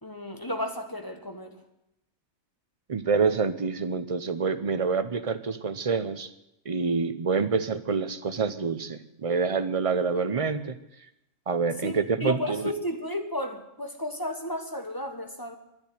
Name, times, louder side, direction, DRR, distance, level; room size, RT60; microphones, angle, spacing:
voice 1, 0.0-1.6 11.8-15.6, left 1 dB, 15° left, 5 dB, 1.5 m, -33 dB
voice 2, 2.9-6.3 6.7-10.8 11.5-12.7, right 5 dB, 30° right, 11 dB, 0.7 m, -27 dB
12.0 x 10.5 x 9.4 m, 0.84 s
omnidirectional pair, 1.4 m